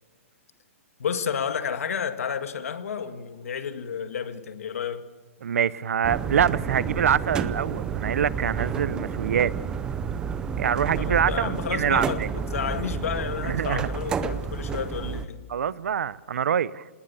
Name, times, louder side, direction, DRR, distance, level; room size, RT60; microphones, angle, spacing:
voice 1, 1.0-5.1 11.0-15.4, left 7 dB, 85° left, 2.0 m, -31 dB
voice 2, 5.4-9.5 10.6-12.3 13.5-13.9 15.5-16.8, right 8 dB, 85° right, 0.7 m, -25 dB
sound 1, 6.0-15.3, right 6 dB, 10° right, 0.6 m, -30 dB
27.0 x 19.5 x 7.0 m
hypercardioid pair, 170°, 8 cm